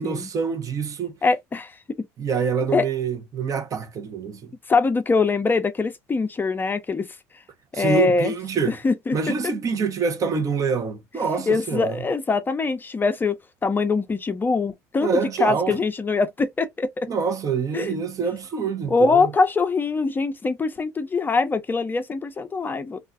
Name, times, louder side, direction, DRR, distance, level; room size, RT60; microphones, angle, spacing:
voice 1, 0.0-1.2 2.2-4.5 7.7-8.8 9.1-12.0 15.0-15.8 17.1-19.3, right 5 dB, 40° right, 0.7 m, -26 dB
voice 2, 1.2-2.1 2.7-2.9 4.7-7.2 7.7-8.3 8.7-9.2 11.5-15.1 15.4-17.1 17.7-18.0 18.9-23.0, left 4 dB, 25° left, 0.5 m, -23 dB
2.3 x 2.3 x 2.5 m
supercardioid pair, 80°, 8 cm